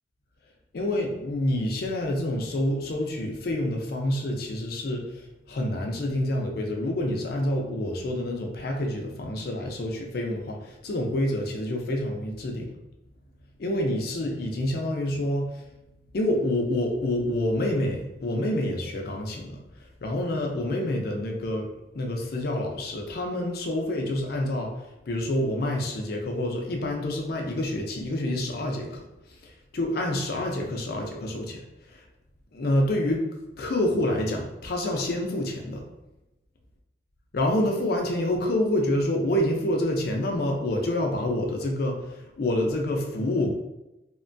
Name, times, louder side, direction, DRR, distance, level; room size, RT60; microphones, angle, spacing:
voice 1, 0.7-12.7 13.6-15.6 16.1-29.0 29.3-31.6 31.9-32.0 32.5-33.2 33.6-35.8 37.3-43.5, left 1 dB, 55° left, 1 dB, 0.4 m, -27 dB
2.9 x 2.1 x 2.5 m, 0.94 s
head